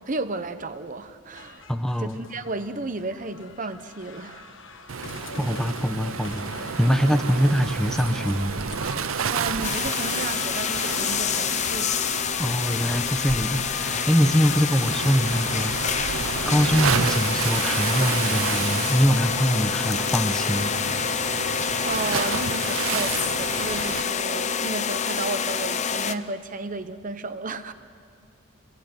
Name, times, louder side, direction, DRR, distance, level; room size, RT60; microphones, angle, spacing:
voice 1, 0.0-1.6 2.0-4.5 9.3-12.0 21.8-27.7, right 3 dB, 40° right, 10 dB, 0.9 m, -33 dB
sound 1, 1.4-19.9, left 4 dB, 70° left, 1.5 m, -41 dB
voice 2, 1.7-2.2 5.4-8.5 12.4-20.7, equal, 5° left, 7 dB, 0.9 m, -23 dB
Waves surf, 4.9-24.0, right 7 dB, 85° right, 0.6 m, -31 dB
sound 2, 9.6-26.1, left 7 dB, 35° left, 0.7 m, -27 dB
29.0 x 19.0 x 9.6 m, 2.4 s
head